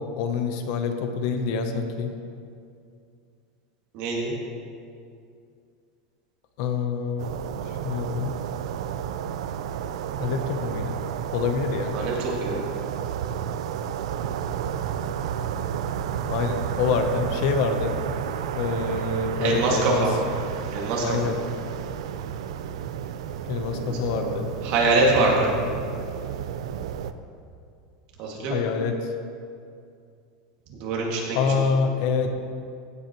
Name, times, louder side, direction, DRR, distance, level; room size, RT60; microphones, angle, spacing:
voice 1, 0.2-2.1 6.6-7.3 7.7-8.3 10.2-11.0 11.3-12.0 16.3-18.0 18.5-20.1 21.0-21.4 23.5-24.5 28.3-29.1 31.3-32.3, left 5 dB, 50° left, 7 dB, 0.8 m, -26 dB
voice 2, 3.9-4.3 11.9-12.6 19.4-20.1 20.7-21.2 23.7-24.3 24.6-25.5 28.2-28.6 30.7-31.5, right 3 dB, 45° right, -2 dB, 2.1 m, -24 dB
sound 1, 7.2-27.1, right 9 dB, 85° right, 0.4 m, -31 dB
16.0 x 8.0 x 3.0 m, 2.4 s
supercardioid pair, 170°, 3 cm